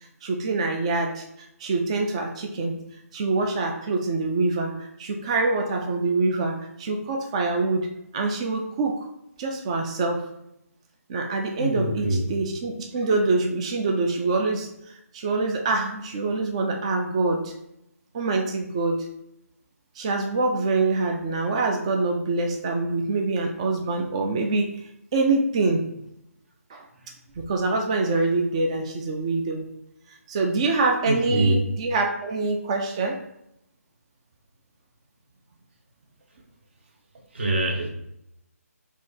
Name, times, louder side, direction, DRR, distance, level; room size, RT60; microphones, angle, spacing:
voice 1, 0.2-1.2 1.6-2.8 3.1-7.9 8.1-9.1 9.4-10.3 11.1-17.5 18.1-19.1 20.0-24.7 25.1-25.8 26.7-26.9 27.4-29.7 30.3-33.2, right 3 dB, 20° right, 3 dB, 0.4 m, -25 dB
voice 2, 11.6-12.2 31.1-31.6 37.3-37.9, right 1 dB, 45° right, 2 dB, 1.1 m, -24 dB
4.8 x 2.8 x 3.9 m, 0.81 s
figure-of-eight pair, 150°, 9 cm